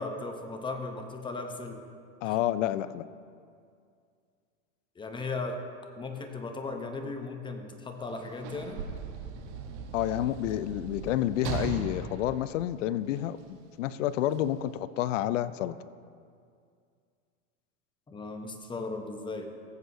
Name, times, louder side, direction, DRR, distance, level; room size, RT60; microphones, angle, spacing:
voice 1, 0.0-1.8 2.2-2.3 5.0-5.6 6.0-8.8 18.1-19.5, left 3 dB, 10° left, 5 dB, 0.8 m, -37 dB
voice 2, 2.2-3.1 9.9-15.8, left 12 dB, 75° left, 16 dB, 0.5 m, -29 dB
Sliding door / Slam, 8.0-13.4 14.3-14.4, right 5 dB, 60° right, 1.2 m, -38 dB
16.0 x 8.0 x 2.7 m, 2.3 s
hypercardioid pair, 115°, 38 cm